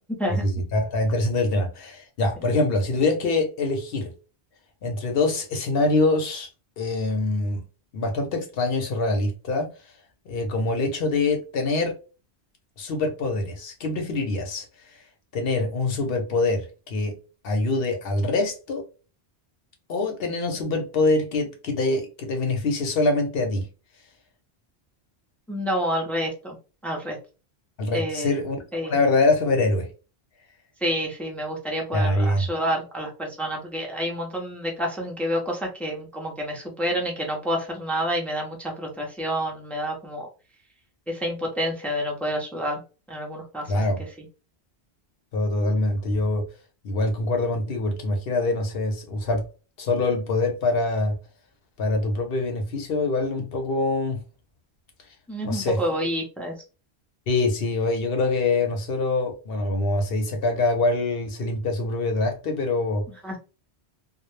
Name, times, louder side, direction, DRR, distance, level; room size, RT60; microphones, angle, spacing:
voice 1, 0.4-4.1 4.8-6.5 6.8-7.6 7.9-9.7 10.3-11.9 12.8-14.7 15.3-17.1 17.4-18.8 19.9-23.6 27.8-28.6 28.9-29.9 31.9-32.5 43.7-44.0 45.3-46.4 46.8-49.4 49.8-51.2 51.8-54.2 55.4-55.8 57.3-63.0, left 2 dB, 65° left, 0.8 m, -24 dB
voice 2, 25.5-26.6 26.8-27.2 27.9-28.3 28.7-29.0 30.8-40.3 41.1-42.8 43.1-43.7 44.2-44.3 55.3-56.5 63.2-63.4, equal, ahead, 0.3 m, -28 dB
2.2 x 2.0 x 3.0 m
omnidirectional pair, 1.1 m